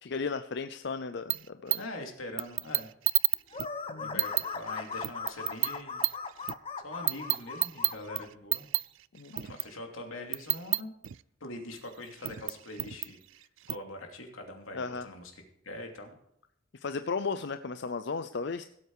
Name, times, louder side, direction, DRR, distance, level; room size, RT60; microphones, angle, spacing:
voice 1, 0.0-1.8 3.9-4.2 9.1-9.3 14.7-15.1 16.7-18.7, left 4 dB, 55° left, 10 dB, 0.5 m, -35 dB
sound 1, 1.3-1.8 2.4-3.7 4.2-6.5 7.1-9.8 10.3-11.2 12.1-13.8, right 20 dB, 65° right, 0.4 m, -30 dB
voice 2, 1.8-2.9 4.0-6.0 6.8-8.7 9.3-10.9 11.4-13.2 13.7-15.3 15.6-16.1, left 1 dB, 85° left, 3 dB, 2.8 m, -43 dB
sound 2, 3.5-8.3, left 4 dB, 30° left, 0.9 m, -39 dB
17.0 x 8.1 x 4.8 m, 0.72 s
head